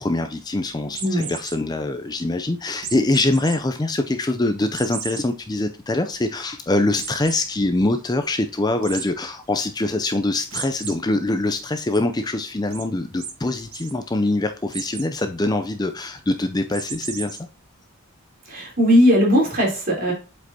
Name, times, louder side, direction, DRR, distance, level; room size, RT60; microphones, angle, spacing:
voice 1, 0.0-17.4, left 2 dB, 20° left, 8 dB, 0.4 m, -24 dB
sound 1, 0.9-1.6 2.8-3.6 4.0-4.1 4.7-5.2 5.7-5.8 6.1-6.2 7.0-7.4 8.8-9.1 10.5-10.9 11.4-12.0 12.7-12.8 13.2-13.3 13.6-13.9 14.7-15.1 16.7-17.4, right 7 dB, 85° right, 1.4 m, -34 dB
voice 2, 18.5-20.1, equal, 40° right, -3 dB, 3.7 m, -18 dB
7.9 x 5.2 x 2.8 m, 0.33 s
head